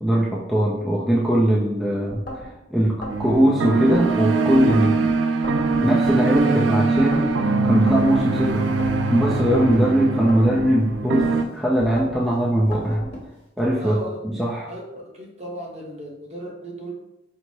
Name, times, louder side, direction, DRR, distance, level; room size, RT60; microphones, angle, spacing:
voice 1, 0.0-5.1 5.8-7.4 7.6-8.7 9.1-13.0 13.6-14.0 14.2-14.7, equal, ahead, -6 dB, 0.4 m, -20 dB
sound 1, 2.1-2.5 3.0-4.1 4.5-5.0 5.4-6.5 7.0-7.4 7.9-8.9 9.4-9.8 10.3-11.3 11.8-12.2 12.7-13.1, equal, 50° left, 1.2 m, -36 dB
sound 2, 3.1-11.4, right 3 dB, 85° right, 0.4 m, -22 dB
sound 3, 3.6-6.2 7.9-10.3 11.2-13.8, equal, 30° left, 1.0 m, -43 dB
voice 2, 13.8-14.2 14.7-16.9, right 1 dB, 35° right, -1 dB, 0.8 m, -35 dB
4.5 x 2.0 x 4.3 m, 0.91 s
head